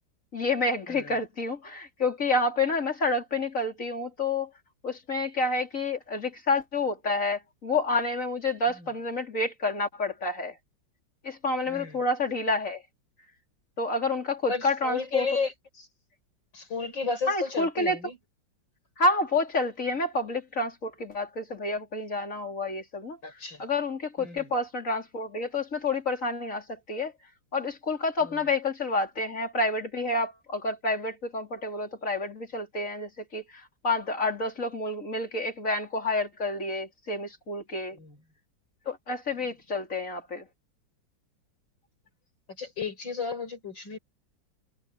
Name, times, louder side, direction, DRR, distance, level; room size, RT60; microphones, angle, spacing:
voice 1, 0.3-4.5 4.8-10.6 11.2-12.8 13.8-15.3 17.3-18.0 19.0-23.2 23.6-27.1 27.5-38.0 38.9-40.5, left 2 dB, 40° left, 4.2 m, -29 dB
voice 2, 11.7-12.0 14.5-15.9 16.5-18.2 23.2-23.6 24.2-24.5 28.2-28.4 37.9-38.2 39.4-39.5 42.6-44.0, left 4 dB, 75° left, 7.1 m, -33 dB
omnidirectional pair, 2.1 m